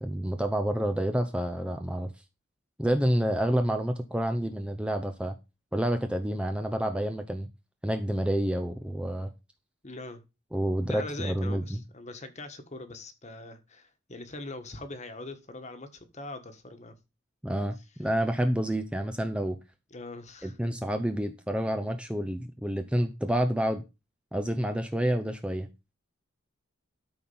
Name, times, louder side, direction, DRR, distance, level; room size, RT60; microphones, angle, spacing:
voice 1, 0.0-2.1 2.8-5.4 5.7-7.5 7.8-9.3 10.5-11.8 17.4-19.6 20.4-23.8 24.3-25.7, right 1 dB, 5° right, 0.6 m, -28 dB
voice 2, 9.8-10.2 10.9-16.9 19.9-20.6, left 2 dB, 35° left, 1.4 m, -42 dB
12.5 x 4.3 x 5.5 m
head